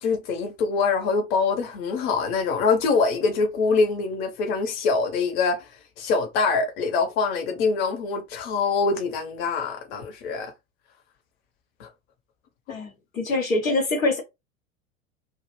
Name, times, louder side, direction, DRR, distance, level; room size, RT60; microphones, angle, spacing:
voice 1, 0.0-10.5 11.8-11.9 12.7-12.8, left 4 dB, 50° left, 0.8 m, -24 dB
voice 2, 12.7-14.2, left 2 dB, 85° left, 0.9 m, -24 dB
2.4 x 2.1 x 3.0 m
figure-of-eight pair, 80°, 40 cm